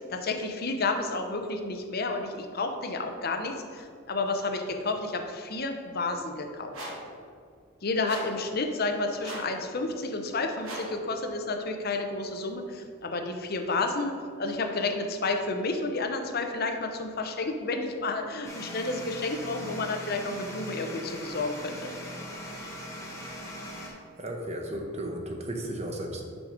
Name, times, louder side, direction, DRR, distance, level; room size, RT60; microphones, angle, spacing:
voice 1, 0.1-6.8 7.8-14.1 14.4-21.9, left 3 dB, 45° left, 4 dB, 0.7 m, -31 dB
sound 1, 6.7-7.1 8.0-8.4 9.2-9.6 10.6-11.0, right 1 dB, 75° right, 1.5 m, -39 dB
sound 2, 18.4-23.9, equal, 15° left, 1.0 m, -40 dB
voice 2, 24.2-26.2, right 1 dB, 30° right, 2 dB, 0.8 m, -34 dB
6.1 x 4.9 x 5.1 m, 2.2 s
head